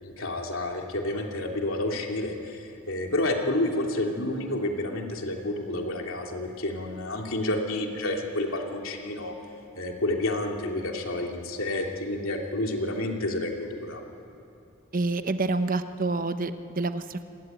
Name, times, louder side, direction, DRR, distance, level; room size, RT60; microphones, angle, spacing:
voice 1, 0.0-9.3 9.8-14.0, left 1 dB, 75° left, 1 dB, 2.9 m, -30 dB
voice 2, 14.9-17.2, right 3 dB, 40° right, 10 dB, 0.9 m, -28 dB
27.0 x 19.0 x 9.2 m, 2.7 s
head